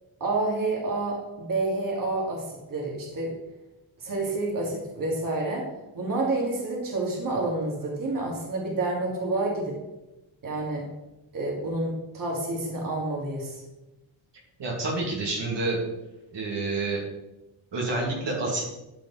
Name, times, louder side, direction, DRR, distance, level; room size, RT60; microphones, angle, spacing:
voice 1, 0.2-3.3 4.0-5.6 5.9-9.7 10.4-10.8 11.3-13.6, right 2 dB, 40° right, -2 dB, 2.6 m, -29 dB
voice 2, 14.6-15.8 16.3-17.0 17.7-18.7, right 2 dB, 60° right, -3 dB, 2.6 m, -28 dB
13.5 x 5.3 x 4.2 m, 0.98 s
cardioid pair, 115°, 48 cm